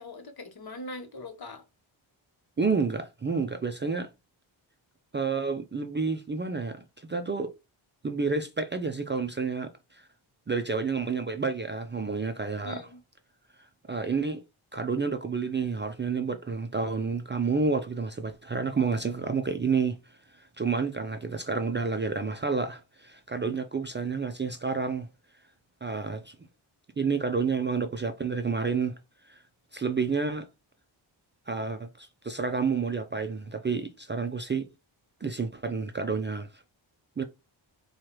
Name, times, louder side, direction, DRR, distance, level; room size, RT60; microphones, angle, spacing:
voice 1, 0.0-1.6 12.6-13.0, left 2 dB, 50° left, 1.1 m, -41 dB
voice 2, 2.6-4.1 5.1-7.5 8.0-10.1 10.5-12.9 13.9-14.4 14.7-25.1 25.8-26.4 27.0-29.0 29.3-29.4 29.7-30.5 31.5-34.7 35.2-36.6 37.2-37.3, right 4 dB, 25° right, 0.4 m, -30 dB
4.6 x 2.4 x 2.9 m
cardioid pair, 65°, 48 cm